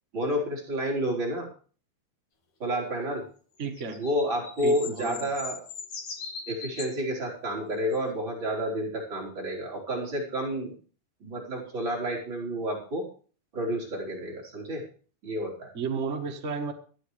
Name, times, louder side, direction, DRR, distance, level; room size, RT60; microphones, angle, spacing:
voice 1, 0.1-1.5 2.6-3.2 4.0-5.6 6.5-10.7 11.2-13.1 13.5-14.8 15.2-15.7, equal, 35° right, -3 dB, 4.5 m, -30 dB
sound 1, 3.6-7.0 7.9-8.0, left 5 dB, 60° left, 3.5 m, -40 dB
voice 2, 3.6-4.0 4.6-5.3 15.7-16.7, right 5 dB, 70° right, 3 dB, 0.7 m, -32 dB
24.0 x 9.5 x 3.3 m, 0.41 s
omnidirectional pair, 3.9 m